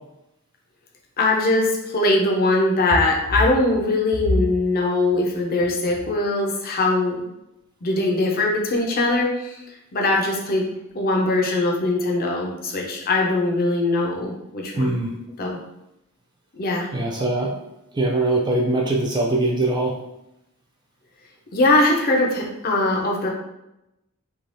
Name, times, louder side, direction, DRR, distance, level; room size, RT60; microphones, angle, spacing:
voice 1, 1.2-7.2 7.8-9.6 9.9-15.0 15.4-15.6 16.5-16.9 21.5-23.3, left 2 dB, 45° left, 0 dB, 0.5 m, -21 dB
voice 2, 14.8-15.1 16.9-17.5 17.9-19.9, right 2 dB, 20° right, 0 dB, 0.3 m, -22 dB
3.2 x 2.3 x 2.6 m, 0.87 s
head